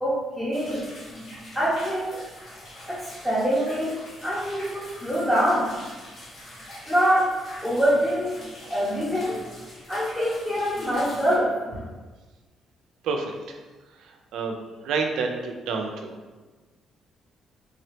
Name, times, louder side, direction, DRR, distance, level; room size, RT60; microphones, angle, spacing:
voice 1, 0.0-0.8 1.1-2.2 2.9-3.9 4.2-5.7 6.9-7.3 7.6-8.3 8.7-9.4 9.9-11.9, equal, 5° left, -8 dB, 0.9 m, -25 dB
sound 1, 0.5-11.4, left 1 dB, 60° left, 1.3 m, -44 dB
voice 2, 13.0-13.6 13.9-16.1, right 4 dB, 85° right, 3 dB, 0.5 m, -29 dB
3.6 x 2.8 x 3.3 m, 1.3 s
cardioid pair, 90°, 0 cm